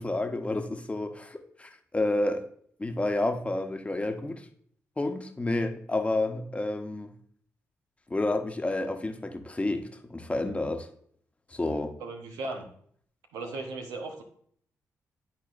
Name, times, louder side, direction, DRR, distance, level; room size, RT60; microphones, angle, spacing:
voice 1, 0.0-2.4 2.8-4.5 5.0-7.1 8.1-10.9 11.5-11.9, left 2 dB, 20° left, 5 dB, 1.0 m, -30 dB
voice 2, 12.0-12.7 13.3-14.2, right 3 dB, 90° right, 3 dB, 1.0 m, -37 dB
11.5 x 4.2 x 2.5 m, 0.62 s
supercardioid pair, 55°, 6 cm